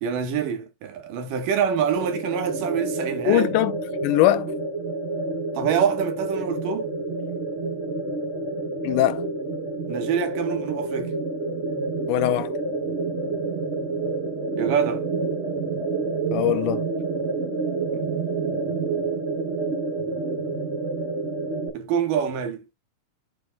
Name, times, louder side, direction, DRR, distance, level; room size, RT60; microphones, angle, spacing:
voice 1, 0.0-3.5 5.5-6.9 9.9-11.1 14.6-15.0 17.9-18.1 21.7-22.7, right 7 dB, 80° right, 3.0 m, -25 dB
sound 1, 2.0-21.7, right 3 dB, 40° right, 0.9 m, -28 dB
voice 2, 3.3-3.7 4.0-4.5 8.8-9.2 12.1-12.5 16.3-16.8, left 15 dB, 80° left, 2.2 m, -21 dB
12.0 x 4.5 x 2.2 m
omnidirectional pair, 3.8 m